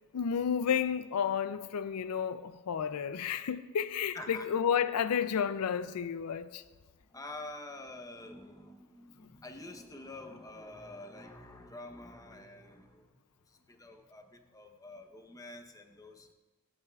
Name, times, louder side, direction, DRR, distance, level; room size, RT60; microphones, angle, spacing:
voice 1, 0.1-6.6, left 7 dB, 85° left, 0.4 m, -31 dB
voice 2, 4.1-4.5 7.1-13.1 13.5-16.3, left 2 dB, 15° left, 0.8 m, -47 dB
25.5 x 8.8 x 2.4 m
head